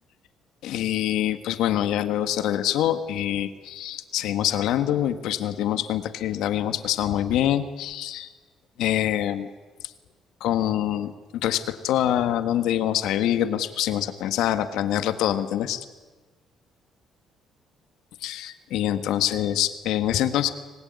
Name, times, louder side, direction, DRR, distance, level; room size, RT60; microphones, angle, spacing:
voice 1, 0.6-8.3 8.8-9.5 10.4-15.8 18.2-20.5, left 11 dB, 85° left, 10 dB, 1.7 m, -25 dB
25.5 x 19.0 x 9.7 m, 1.3 s
cardioid pair, 115°, 0 cm